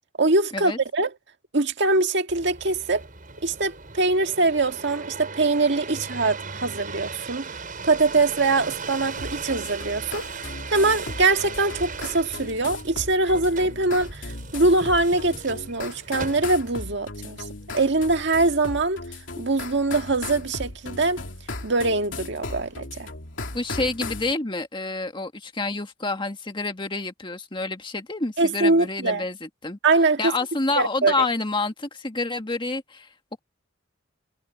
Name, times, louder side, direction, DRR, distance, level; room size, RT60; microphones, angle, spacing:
voice 1, 0.2-1.1 1.5-3.1 3.4-7.5 7.8-17.5 17.7-19.0 19.4-21.2 21.6-23.1 28.4-29.2 29.8-30.3 30.8-31.3, right 3 dB, 65° right, 1.8 m, -23 dB
sound 1, 2.3-16.8 17.4-18.0, right 4 dB, 45° right, 6.2 m, -38 dB
sound 2, 9.2-24.3, left 2 dB, 80° left, 2.9 m, -37 dB
voice 2, 23.5-29.8 30.2-33.1, left 3 dB, 25° left, 1.8 m, -28 dB
head